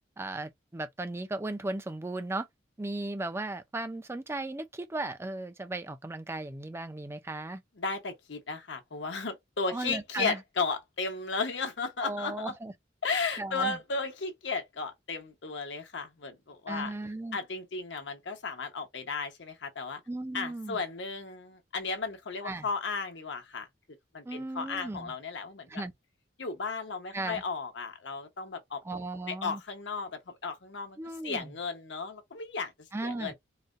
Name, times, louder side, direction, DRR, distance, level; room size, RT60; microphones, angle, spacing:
voice 1, 0.2-2.5 2.8-7.6 9.7-10.4 12.0-12.7 13.4-13.8 16.7-17.4 20.1-20.8 22.4-22.7 24.2-25.1 25.7-25.9 27.1-27.4 28.8-29.6 31.0-31.5 32.9-33.3, right 2 dB, 15° right, 0.4 m, -36 dB
voice 2, 7.8-12.5 13.0-16.9 17.3-20.0 20.3-23.7 24.1-25.8 26.4-28.8 29.3-31.0 31.2-33.3, left 4 dB, 75° left, 1.0 m, -35 dB
4.0 x 2.2 x 2.5 m
head